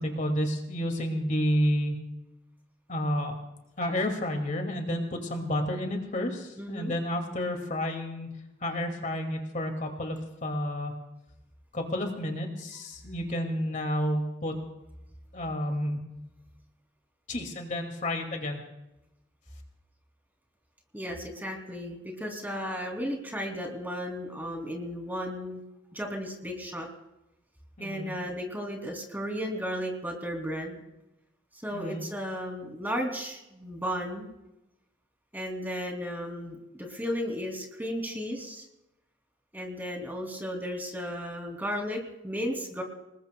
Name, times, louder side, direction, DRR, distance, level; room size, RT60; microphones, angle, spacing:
voice 1, 0.0-2.0 2.9-3.3 3.8-8.3 8.6-10.9 11.7-14.5 15.3-16.0 17.3-18.6 27.8-28.2 31.7-32.0, equal, 45° left, 3 dB, 2.4 m, -30 dB
voice 2, 6.6-6.9 20.9-25.6 25.9-26.9 27.8-30.8 31.6-34.3 35.3-38.7 39.5-42.8, equal, 10° right, 1 dB, 3.0 m, -34 dB
28.0 x 20.0 x 2.3 m, 0.91 s
head